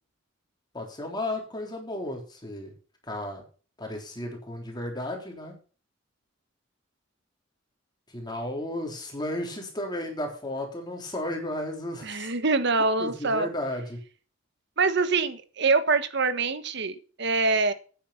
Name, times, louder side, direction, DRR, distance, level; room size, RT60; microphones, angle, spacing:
voice 1, 0.7-2.7 3.0-3.4 3.8-5.5 8.1-12.3 13.0-14.0, left 1 dB, 20° left, 2 dB, 3.6 m, -34 dB
voice 2, 12.0-13.5 14.8-17.7, right 3 dB, 60° right, 12 dB, 1.3 m, -25 dB
10.0 x 9.5 x 5.8 m, 0.38 s
head